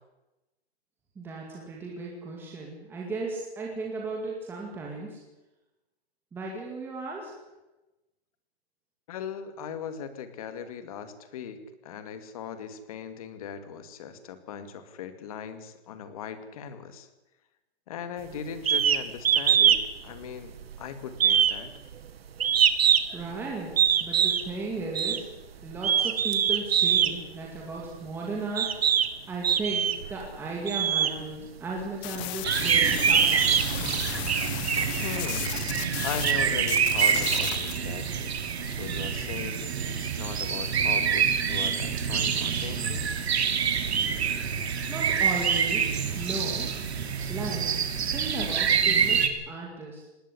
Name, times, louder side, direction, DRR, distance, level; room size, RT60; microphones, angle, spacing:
voice 1, 1.2-5.2 6.3-7.3 23.1-23.7 24.0-25.2 25.6-29.0 29.3-33.6 44.9-46.7 47.3-47.7 48.1-50.1, right 3 dB, 5° right, -2 dB, 2.3 m, -35 dB
voice 2, 9.1-17.1 17.9-21.7 35.0-35.5 36.0-43.1, left 7 dB, 35° left, 11 dB, 2.2 m, -39 dB
sound 1, 18.7-19.0 19.2-19.8 20.1-20.8 21.2-23.2 23.8-24.5 24.9-25.2 25.8-27.1 27.9-28.0 28.6-29.1 29.4-30.1 30.7-31.1 31.8-31.9 32.4-34.2, right 9 dB, 70° right, 1.9 m, -23 dB
sound 2, 32.0-36.3 36.6-37.8, left 14 dB, 15° left, 0.9 m, -35 dB
sound 3, 32.4-49.3, right 7 dB, 85° right, 3.1 m, -26 dB
19.5 x 16.5 x 10.0 m, 1.0 s
hypercardioid pair, 175°, 32 cm